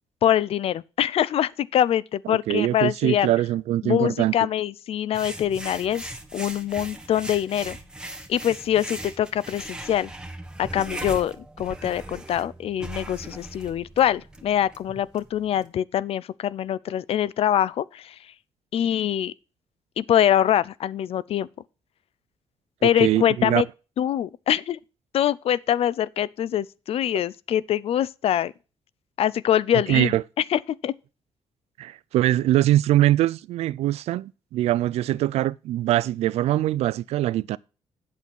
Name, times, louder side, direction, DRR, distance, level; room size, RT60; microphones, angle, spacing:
voice 1, 0.2-3.3 3.8-7.8 8.3-10.1 10.6-18.2 18.7-19.3 20.0-21.5 22.8-23.7 24.0-24.8 25.1-28.5 29.2-30.2 30.5-30.9, left 10 dB, 65° left, 0.4 m, -24 dB
voice 2, 2.3-4.3 22.8-23.6 29.9-30.2 31.8-37.6, right 14 dB, 80° right, 0.4 m, -23 dB
sound 1, 5.1-15.7, right 1 dB, 5° right, 1.4 m, -39 dB
8.3 x 7.1 x 4.5 m
cardioid pair, 70°, 11 cm